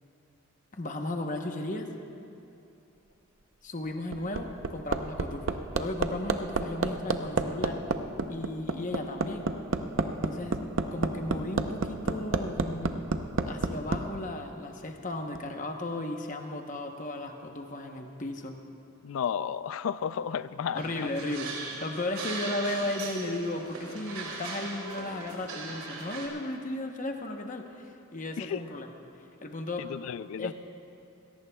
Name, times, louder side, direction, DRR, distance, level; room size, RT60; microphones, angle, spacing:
voice 1, 0.7-1.9 3.6-7.8 8.3-9.4 10.2-10.6 10.9-12.9 13.5-18.5 20.7-28.9 29.4-29.9 30.4-30.5, left 2 dB, 35° left, 4 dB, 0.9 m, -35 dB
Hammer, 3.9-14.0 15.3-15.4, right 3 dB, 60° right, 0.6 m, -29 dB
voice 2, 19.0-21.1 28.4-28.6 29.8-30.5, left 7 dB, 70° left, 16 dB, 0.3 m, -33 dB
sound 1, 20.7-26.3, right 3 dB, 75° right, 2.5 m, -39 dB
22.0 x 17.5 x 2.3 m, 2.7 s
head